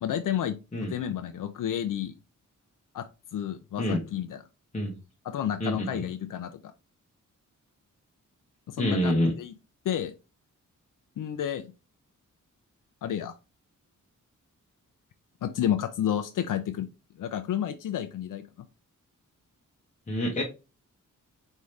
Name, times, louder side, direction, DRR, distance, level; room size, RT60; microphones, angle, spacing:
voice 1, 0.0-2.1 2.9-3.0 3.3-4.4 5.2-6.7 8.7-9.5 9.8-10.1 11.2-11.7 13.0-13.3 15.4-16.9 17.2-18.4, left 10 dB, 80° left, 8 dB, 0.5 m, -31 dB
voice 2, 5.6-6.0 8.8-9.3 20.1-20.4, left 1 dB, 25° left, -1 dB, 1.0 m, -27 dB
4.8 x 2.7 x 3.2 m, 0.30 s
wide cardioid pair, 110°, 32 cm